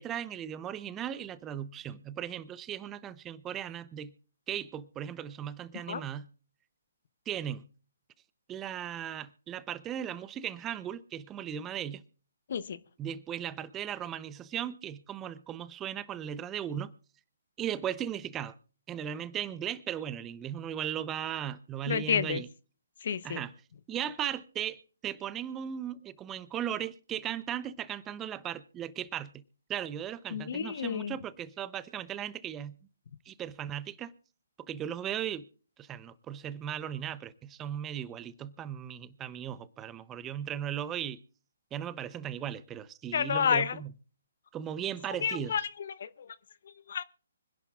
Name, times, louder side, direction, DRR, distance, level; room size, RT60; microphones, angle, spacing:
voice 1, 0.0-4.1 4.5-6.3 7.3-7.7 8.5-12.0 13.0-16.9 17.6-18.5 18.9-22.5 23.2-23.5 23.9-29.3 29.7-32.7 33.3-34.1 34.7-35.4 35.8-41.2 41.7-43.9 44.5-45.6, right 10 dB, 15° right, 0.7 m, -37 dB
voice 2, 21.9-22.4 23.0-23.4 30.3-31.1 43.1-43.7 45.2-46.3 46.9-47.0, left 7 dB, 55° left, 0.8 m, -30 dB
25.0 x 11.0 x 2.4 m
figure-of-eight pair, 140°, 0 cm